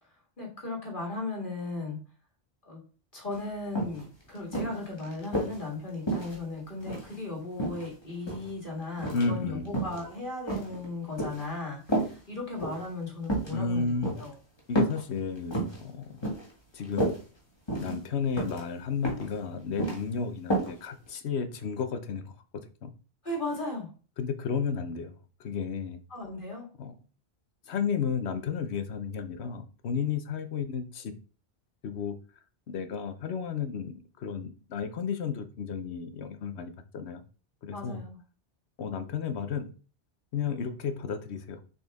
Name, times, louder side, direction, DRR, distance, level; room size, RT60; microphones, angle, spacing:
voice 1, 0.0-2.0 2.6-2.8 3.1-14.4 23.2-23.9 26.1-26.7 37.7-38.2, left 2 dB, 50° left, -1 dB, 2.0 m, -36 dB
sound 1, 3.3-3.4 3.8-4.0 4.5-5.6 6.1-7.2 7.6-8.5 9.0-9.3 9.7-10.0 10.5-11.5 11.9-12.1 12.6-12.8 13.2-13.5 14.0-14.3 14.8-15.0 15.4-15.8 16.2-16.5 16.8-17.2 17.7-18.0 18.4-18.6 19.0-19.3 19.6-20.0 20.5-20.7 21.1-21.2, right 1 dB, 25° left, 1.6 m, -30 dB
voice 2, 9.1-9.7 13.5-14.1 14.7-16.3 16.7-17.2 17.8-22.3 22.8-22.9 24.2-26.0 26.8-26.9 27.7-31.1 31.8-32.2 32.7-37.2 37.6-38.0 38.8-39.7 40.3-41.6, left 5 dB, 85° left, 9 dB, 1.0 m, -32 dB
6.5 x 4.2 x 3.5 m, 0.37 s
omnidirectional pair, 1.1 m